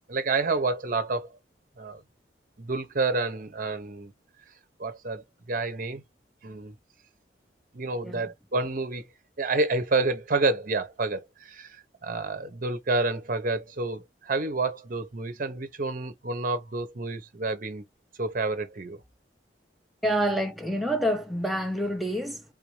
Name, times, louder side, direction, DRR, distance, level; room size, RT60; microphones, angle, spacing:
voice 1, 0.1-1.3 1.8-2.0 2.6-4.1 4.8-6.0 6.4-6.7 7.7-9.1 9.4-17.8 18.2-19.0, right 3 dB, 50° right, 0.7 m, -29 dB
voice 2, 20.0-22.4, equal, ahead, 0.5 m, -27 dB
3.5 x 2.5 x 3.0 m
head